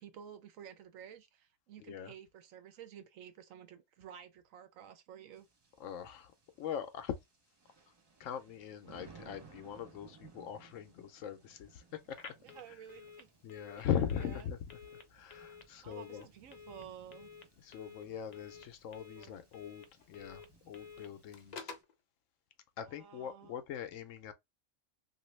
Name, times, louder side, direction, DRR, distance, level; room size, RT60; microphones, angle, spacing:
voice 1, 0.0-5.5 12.5-13.3 13.8-13.9 15.8-17.3 19.2-19.3 23.0-23.5, right 9 dB, 80° right, 1.1 m, -52 dB
voice 2, 1.8-2.1 5.8-7.2 7.9-8.0 8.2-12.2 12.7-12.8 13.4-14.6 14.9-16.3 17.6-21.7 22.8-24.3, left 9 dB, 75° left, 0.9 m, -41 dB
sound 1, 5.3-21.8, right 5 dB, 35° right, 0.4 m, -62 dB
Telephone, 12.1-21.9, left 5 dB, 55° left, 0.4 m, -53 dB
2.9 x 2.6 x 3.1 m
omnidirectional pair, 1.4 m